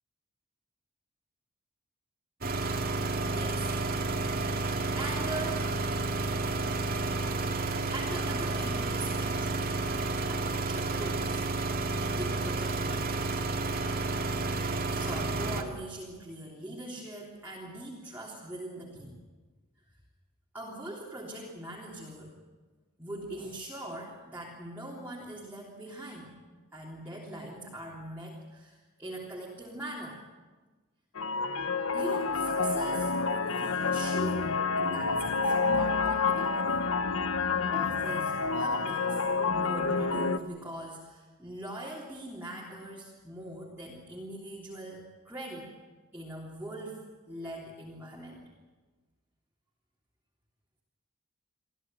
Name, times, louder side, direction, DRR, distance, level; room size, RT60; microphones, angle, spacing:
sound 1, 2.4-15.6, right 3 dB, 45° right, 2.2 m, -31 dB
voice 1, 3.3-3.7 4.6-5.7 7.9-9.7 10.3-11.4 11.9-13.4 14.9-19.2 20.5-22.4 23.0-26.3 26.7-30.2 31.9-36.7 37.7-39.2 39.5-45.7 46.1-48.4, right 1 dB, 10° right, -5 dB, 3.4 m, -42 dB
sound 2, 31.2-40.4, left 4 dB, 80° left, 1.1 m, -28 dB
26.0 x 15.5 x 9.1 m, 1.3 s
head